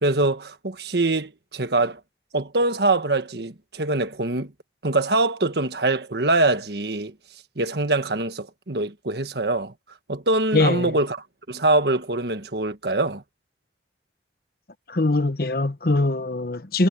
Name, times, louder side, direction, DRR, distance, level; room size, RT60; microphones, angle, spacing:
voice 1, 0.0-2.0 2.3-4.5 4.8-7.1 7.6-9.7 10.1-11.2 11.5-13.2, right 2 dB, 65° right, 1.5 m, -23 dB
voice 2, 10.5-10.9 14.9-16.9, left 2 dB, 55° left, 1.1 m, -22 dB
head